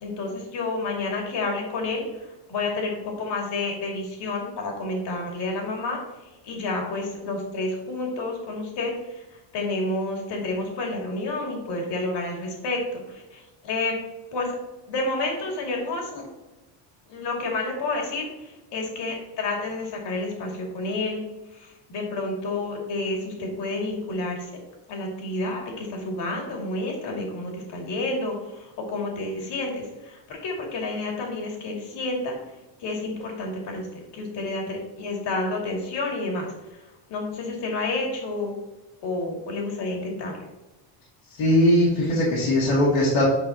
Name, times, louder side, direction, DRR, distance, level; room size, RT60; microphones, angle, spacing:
voice 1, 0.0-2.1 2.5-6.0 6.4-9.2 9.5-13.9 14.3-14.5 14.9-16.3 17.1-21.2 21.5-24.6 24.9-32.3 32.8-36.5 36.7-36.8 37.1-38.5 39.0-40.4, left 2 dB, 55° left, 0 dB, 2.4 m, -30 dB
voice 2, 41.4-43.2, left 1 dB, 80° left, -7 dB, 2.6 m, -20 dB
9.6 x 5.3 x 2.9 m, 1.1 s
cardioid pair, 135°, 49 cm